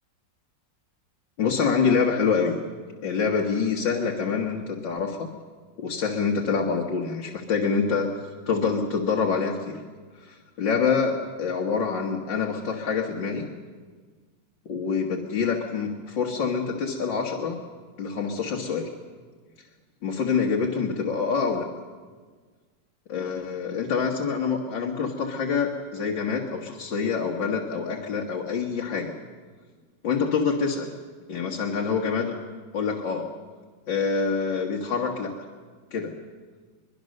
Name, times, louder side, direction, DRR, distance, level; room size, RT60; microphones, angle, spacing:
voice 1, 1.4-2.6 3.0-5.3 5.8-8.1 8.5-9.8 10.2-13.5 14.7-17.6 18.0-18.9 20.0-21.7 23.1-29.1 30.0-30.9 31.3-32.3 32.7-33.3 33.9-35.3 35.9-36.1, left 5 dB, 85° left, -1 dB, 2.3 m, -26 dB
23.0 x 22.5 x 6.6 m, 1.5 s
omnidirectional pair, 2.0 m